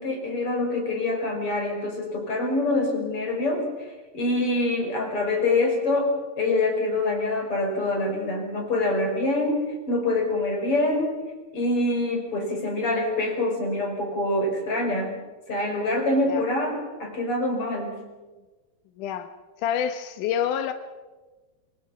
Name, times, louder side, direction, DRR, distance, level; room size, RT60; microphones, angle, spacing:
voice 1, 0.0-3.9 4.1-9.6 9.9-11.1 11.5-15.2 15.5-17.9, left 2 dB, 45° left, 2 dB, 5.9 m, -25 dB
voice 2, 19.0-19.3 19.6-20.7, left 9 dB, 90° left, 8 dB, 2.5 m, -27 dB
25.0 x 24.5 x 5.7 m, 1.2 s
omnidirectional pair, 3.5 m